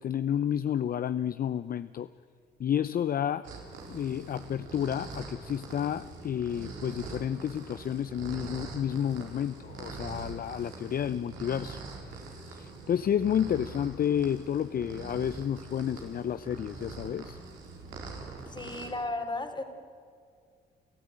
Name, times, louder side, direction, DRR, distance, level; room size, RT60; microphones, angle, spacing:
voice 1, 0.0-2.1 2.6-3.5 3.9-11.8 12.5-17.4, left 9 dB, 50° left, 14 dB, 0.6 m, -30 dB
sound 1, 3.4-18.9, right 3 dB, 85° right, 4.4 m, -43 dB
voice 2, 18.5-19.6, left 2 dB, 25° left, 6 dB, 3.2 m, -34 dB
29.0 x 14.0 x 8.8 m, 2.2 s
cardioid pair, 70°, 19 cm